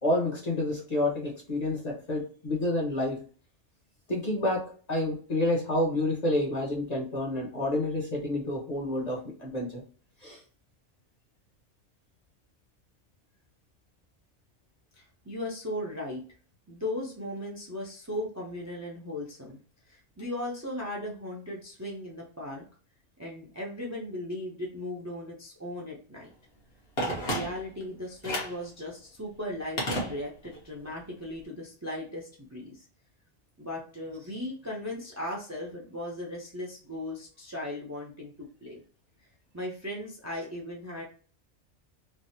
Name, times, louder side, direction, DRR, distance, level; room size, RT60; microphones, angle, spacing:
voice 1, 0.0-3.2 4.1-9.8 10.2-10.4, left 1 dB, 40° left, -2 dB, 0.9 m, -29 dB
voice 2, 15.0-16.2 16.7-19.6 19.9-22.6 23.2-26.3 27.0-32.8 33.6-38.8 39.5-41.0, left 1 dB, 20° right, -3 dB, 0.5 m, -37 dB
Telephone, 27.0-27.8 28.2-28.6 29.8-30.6 30.9-31.0, equal, 60° left, 1.3 m, -32 dB
3.3 x 2.0 x 2.7 m, 0.41 s
omnidirectional pair, 1.2 m